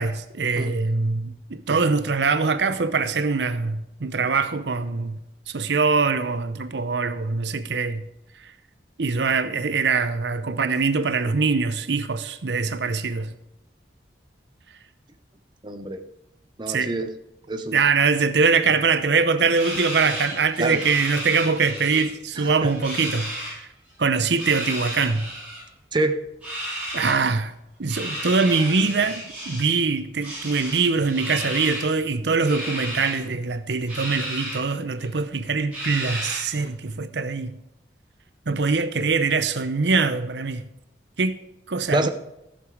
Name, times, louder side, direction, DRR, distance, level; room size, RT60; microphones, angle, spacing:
voice 1, 0.0-5.2 5.5-8.0 9.0-13.3 16.7-16.9 17.7-23.7 24.0-25.3 26.9-27.5 27.8-37.5 38.5-40.6 41.2-41.4 41.7-42.1, right 4 dB, 80° right, 0.7 m, -23 dB
voice 2, 15.6-16.0 16.6-17.1 17.5-17.8 20.6-20.8 22.4-22.7 25.9-26.2 41.9-42.1, right 2 dB, 25° right, 0.7 m, -25 dB
sound 1, 19.5-22.0 22.3-23.5 24.3-25.6 26.4-27.2 27.9-29.8 30.2-31.9 32.4-33.2 33.9-34.6 35.0-35.1 35.7-36.6, right 1 dB, 5° right, 5.1 m, -33 dB
14.5 x 6.8 x 4.8 m
head